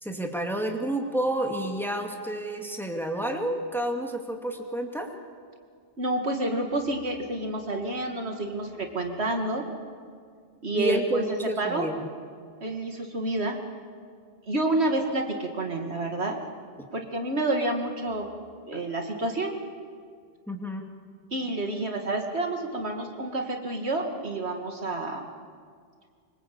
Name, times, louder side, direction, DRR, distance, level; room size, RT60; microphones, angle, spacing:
voice 1, 0.0-5.1 10.7-12.1 20.5-20.9, right 1 dB, ahead, 3 dB, 2.3 m, -30 dB
voice 2, 6.0-9.7 10.6-11.2 11.6-11.9 12.6-13.6 14.5-16.4 16.9-18.3 18.7-19.6 21.3-25.3, right 2 dB, 80° right, 3 dB, 2.5 m, -29 dB
24.5 x 24.0 x 8.5 m, 2.1 s
omnidirectional pair, 1.1 m